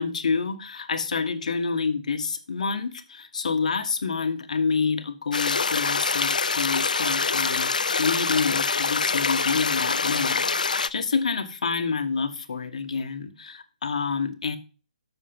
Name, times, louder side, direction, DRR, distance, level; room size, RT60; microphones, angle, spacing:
voice 1, 0.0-14.6, left 5 dB, 65° left, 1.4 m, -28 dB
sound 1, 5.3-10.9, left 4 dB, 85° left, 0.5 m, -25 dB
7.1 x 6.6 x 5.2 m
hypercardioid pair, 155°, 4 cm